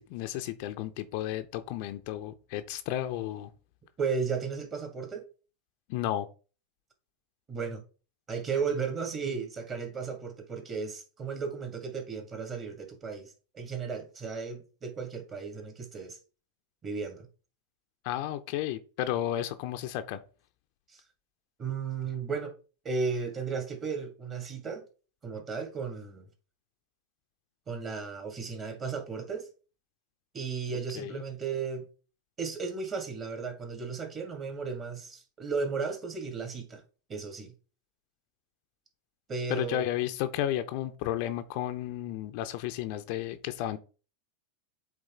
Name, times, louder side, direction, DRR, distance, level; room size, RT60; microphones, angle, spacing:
voice 1, 0.0-3.5 5.9-6.3 18.0-20.2 30.9-31.2 39.5-43.8, left 12 dB, 55° left, 0.6 m, -33 dB
voice 2, 4.0-5.2 7.5-7.8 8.3-16.2 16.8-17.3 20.9-21.0 21.6-22.5 22.8-24.9 25.2-26.2 27.7-29.5 30.3-31.8 32.4-36.8 37.1-37.5 39.3-39.9, right 5 dB, 30° right, 2.1 m, -34 dB
8.1 x 3.6 x 3.7 m
figure-of-eight pair, 90°, 0 cm